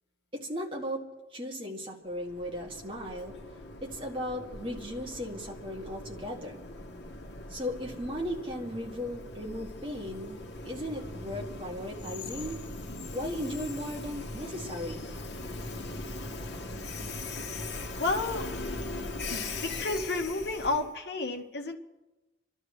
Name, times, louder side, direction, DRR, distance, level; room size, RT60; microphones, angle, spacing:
voice 1, 0.3-1.0 1.3-3.3 3.8-6.6 7.5-12.6 13.1-15.0, equal, 30° right, -1 dB, 2.1 m, -36 dB
Train, 2.2-20.9, left 2 dB, 85° left, 1.2 m, -40 dB
voice 2, 18.0-18.5 19.3-21.8, left 3 dB, 65° left, 4 dB, 1.3 m, -31 dB
29.5 x 12.5 x 3.2 m, 1.1 s
head